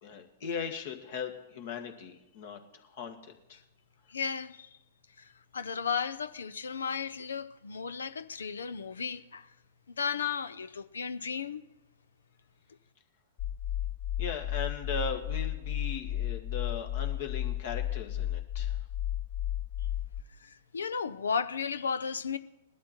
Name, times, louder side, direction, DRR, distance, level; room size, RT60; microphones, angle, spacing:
voice 1, 0.0-3.6 14.2-18.8, left 5 dB, 60° left, 2.0 m, -38 dB
voice 2, 4.1-4.7 5.2-9.5 10.0-11.6 20.4-22.4, left 6 dB, 80° left, 0.6 m, -34 dB
sound 1, 13.4-20.2, left 12 dB, 45° left, 0.7 m, -33 dB
19.5 x 12.0 x 4.5 m
hypercardioid pair, 110°, 0 cm